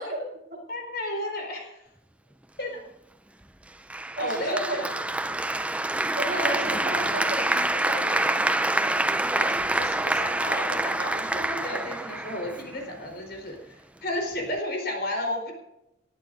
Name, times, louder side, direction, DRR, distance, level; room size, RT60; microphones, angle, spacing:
voice 1, 0.0-0.6 4.2-5.1 6.1-9.1, right 1 dB, 40° right, 0 dB, 5.9 m, -34 dB
voice 2, 0.7-1.8 2.6-2.8 4.2-4.9 6.3-6.6 9.3-13.6 14.0-15.5, left 1 dB, 50° left, 3 dB, 4.4 m, -32 dB
Applause, 3.9-12.9, right 2 dB, 5° right, 0.5 m, -26 dB
19.5 x 11.5 x 4.1 m, 0.85 s
head